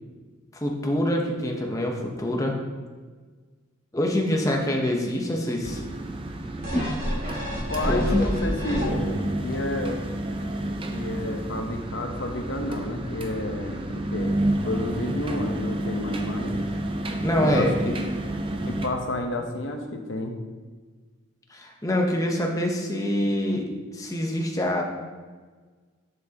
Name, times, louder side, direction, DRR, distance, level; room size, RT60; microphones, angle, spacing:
voice 1, 0.5-2.6 3.9-5.8 7.9-8.3 17.2-17.9 21.5-24.8, left 1 dB, 15° left, 1 dB, 0.9 m, -25 dB
sound 1, 5.6-18.9, right 1 dB, 25° right, 0.6 m, -30 dB
sound 2, 6.6-9.3 9.8-9.9, left 1 dB, 45° right, 2.2 m, -27 dB
voice 2, 7.7-10.0 10.9-13.8 14.1-16.6 17.4-17.9 18.6-20.4, left 2 dB, 60° left, 4 dB, 0.9 m, -30 dB
11.0 x 6.1 x 2.9 m, 1.4 s
head